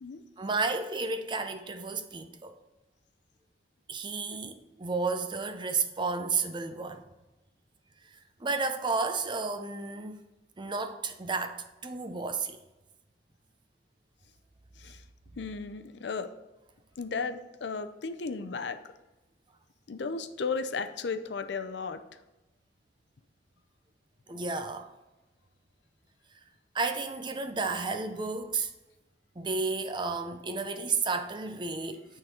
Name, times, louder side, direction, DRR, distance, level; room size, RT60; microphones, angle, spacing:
voice 1, 0.4-2.6 3.9-7.0 8.4-10.2 10.6-12.6 24.3-24.9 26.7-28.7 29.4-32.1, right 4 dB, 25° right, 0.5 m, -32 dB
voice 2, 15.4-16.3 17.0-18.8 19.9-22.0, left 4 dB, 70° left, 0.5 m, -34 dB
9.1 x 3.9 x 4.3 m
head